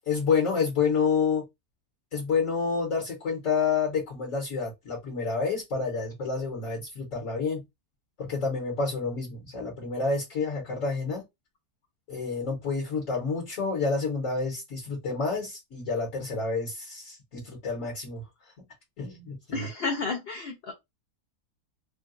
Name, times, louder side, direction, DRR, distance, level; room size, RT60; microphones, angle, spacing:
voice 1, 0.1-1.4 2.1-7.6 8.2-11.2 12.1-18.2 19.0-19.7, left 5 dB, 55° left, 1.4 m, -29 dB
voice 2, 19.5-20.7, left 4 dB, 80° left, 0.5 m, -31 dB
3.7 x 2.3 x 2.4 m
omnidirectional pair, 1.7 m